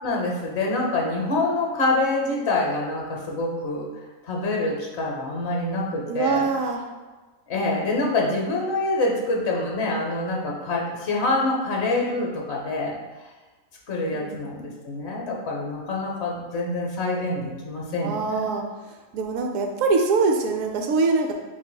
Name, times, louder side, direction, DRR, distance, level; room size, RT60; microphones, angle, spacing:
voice 1, 0.0-3.9 4.2-6.5 7.5-13.0 13.9-18.4, left 2 dB, 60° left, -1 dB, 1.0 m, -26 dB
voice 2, 6.1-6.8 14.1-14.4 18.0-18.6 19.1-21.3, right 4 dB, 80° right, 3 dB, 1.0 m, -23 dB
7.3 x 2.6 x 2.2 m, 1.2 s
omnidirectional pair, 1.4 m